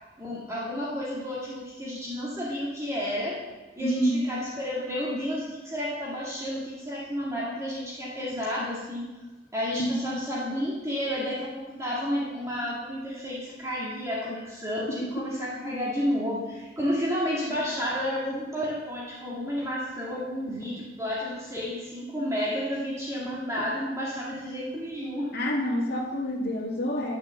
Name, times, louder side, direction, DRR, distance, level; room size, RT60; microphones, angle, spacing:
voice 1, 0.2-3.5 3.8-9.1 9.5-25.3, equal, 15° right, -6 dB, 2.0 m, -31 dB
voice 2, 3.8-4.2 9.8-10.0 15.0-15.2 25.3-27.2, equal, 60° left, -4 dB, 2.0 m, -27 dB
11.5 x 6.7 x 6.9 m, 1.2 s
head